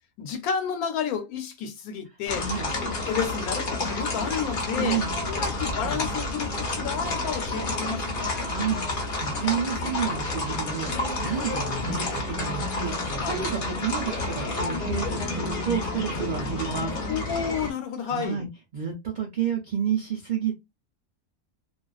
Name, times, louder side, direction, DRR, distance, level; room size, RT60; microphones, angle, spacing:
voice 1, 0.2-2.5 3.1-8.3 10.3-10.4 13.2-13.4 17.1-18.5, left 7 dB, 85° left, 1.1 m, -31 dB
sound 1, 2.3-17.7, left 2 dB, 45° left, 0.7 m, -30 dB
voice 2, 2.3-2.7 4.7-5.1 8.4-17.0 18.0-18.5 18.7-20.5, right 8 dB, 75° right, 0.4 m, -30 dB
2.4 x 2.3 x 2.3 m
omnidirectional pair, 1.5 m